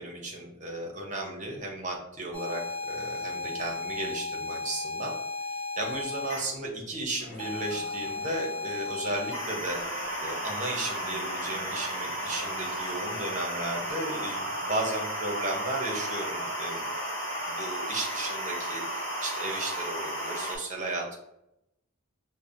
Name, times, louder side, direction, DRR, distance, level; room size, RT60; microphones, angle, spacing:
voice 1, 0.0-5.1 5.8-9.8 10.2-16.8 17.5-21.2, right 2 dB, 35° right, 0 dB, 0.7 m, -35 dB
sound 1, 2.3-6.4 7.4-20.6, left 1 dB, 50° left, 1.5 m, -34 dB
sound 2, 7.2-13.9, left 2 dB, 65° left, 0.7 m, -50 dB
sound 3, 9.6-17.7, right 3 dB, 65° right, 0.4 m, -45 dB
5.2 x 2.1 x 2.5 m, 0.83 s
head